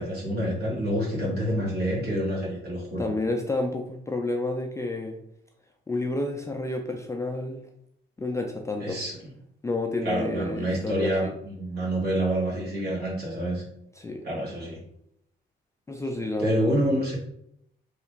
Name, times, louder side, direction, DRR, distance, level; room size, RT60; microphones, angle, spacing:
voice 1, 0.0-3.1 8.8-9.2 10.0-13.6 14.2-14.8 16.4-17.2, equal, 55° right, -4 dB, 1.4 m, -27 dB
voice 2, 3.0-5.2 5.9-7.6 8.2-9.0 9.6-11.3 14.0-14.3 15.9-16.7, left 2 dB, 15° left, 2 dB, 0.3 m, -30 dB
3.2 x 2.4 x 3.0 m, 0.74 s
cardioid pair, 90°, 20 cm